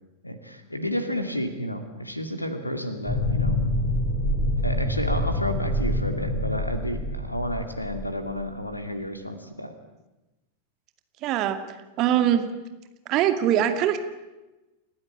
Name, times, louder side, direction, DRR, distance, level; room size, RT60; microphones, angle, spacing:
voice 1, 0.2-3.6 4.6-9.7, equal, 85° left, 8 dB, 2.5 m, -31 dB
sound 1, 3.1-8.5, left 1 dB, 15° left, 7.1 m, -26 dB
voice 2, 11.2-12.4 13.1-14.0, right 10 dB, 40° right, 9 dB, 2.4 m, -23 dB
29.5 x 15.0 x 9.7 m, 1.0 s
figure-of-eight pair, 90°, 0 cm